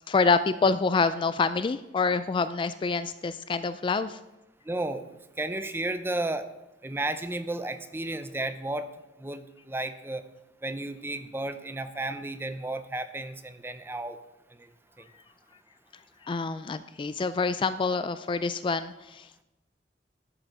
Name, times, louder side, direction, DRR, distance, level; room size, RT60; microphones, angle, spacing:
voice 1, 0.1-4.2 16.2-19.4, left 4 dB, 30° left, 13 dB, 0.3 m, -27 dB
voice 2, 4.6-5.1 5.4-6.5 6.8-8.9 9.2-10.2 10.6-14.2 14.5-14.7 15.0-15.1, right 2 dB, 15° right, 10 dB, 0.6 m, -33 dB
11.5 x 7.9 x 4.8 m, 0.95 s
head